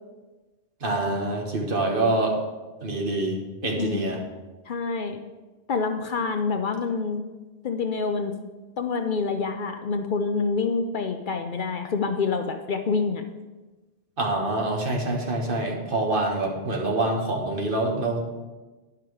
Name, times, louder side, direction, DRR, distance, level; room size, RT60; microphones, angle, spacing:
voice 1, 0.8-2.4 2.8-4.2 14.2-18.2, right 2 dB, 55° right, 0 dB, 1.5 m, -26 dB
voice 2, 3.8-4.1 4.7-5.2 5.7-7.3 7.6-8.4 8.8-13.2, left 4 dB, 55° left, 6 dB, 0.7 m, -27 dB
10.5 x 5.9 x 4.7 m, 1.2 s
omnidirectional pair, 1.1 m